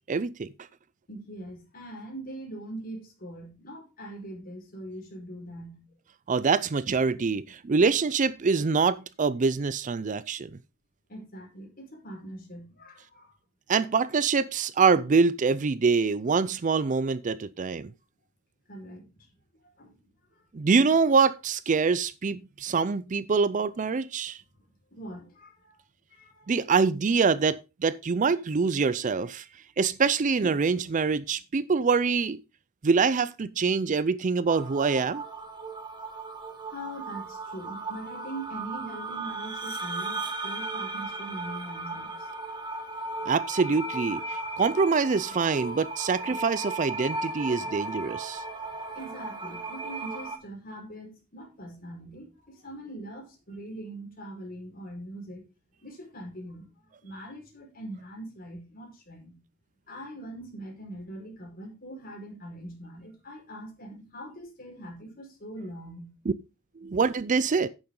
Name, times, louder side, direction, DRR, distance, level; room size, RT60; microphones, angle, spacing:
voice 1, 0.1-0.5 6.3-10.5 13.7-17.9 20.5-24.4 26.5-29.4 29.8-32.4 32.8-35.2 43.2-48.4 66.8-67.7, right 5 dB, 35° right, 0.4 m, -25 dB
voice 2, 1.1-6.0 11.1-13.4 18.7-19.3 19.8-20.4 24.9-25.8 26.1-26.5 36.5-42.3 44.5-44.6 48.6-55.4 55.8-59.4 59.9-66.1, right 1 dB, 45° left, 5.0 m, -42 dB
sound 1, 34.5-50.4, right 3 dB, 20° right, 1.8 m, -36 dB
10.5 x 8.6 x 3.8 m
head